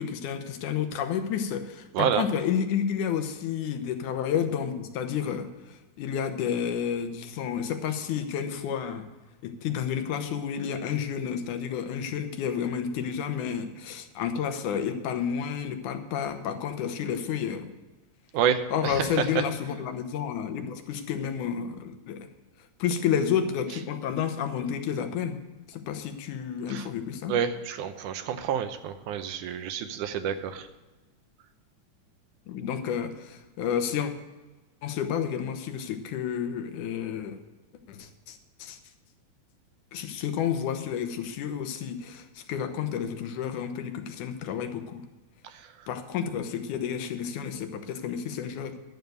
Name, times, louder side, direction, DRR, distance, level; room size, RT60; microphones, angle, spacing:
voice 1, 0.0-9.1 9.4-17.7 18.7-22.3 22.8-25.4 25.7-27.4 32.5-34.1 34.8-37.4 37.9-38.8 39.9-45.0 45.9-48.8, left 8 dB, 80° left, 7 dB, 2.4 m, -30 dB
voice 2, 18.3-19.1 26.7-26.9 27.3-30.7, right 8 dB, 85° right, 9 dB, 2.3 m, -28 dB
11.0 x 6.9 x 7.9 m, 1.2 s
omnidirectional pair, 3.5 m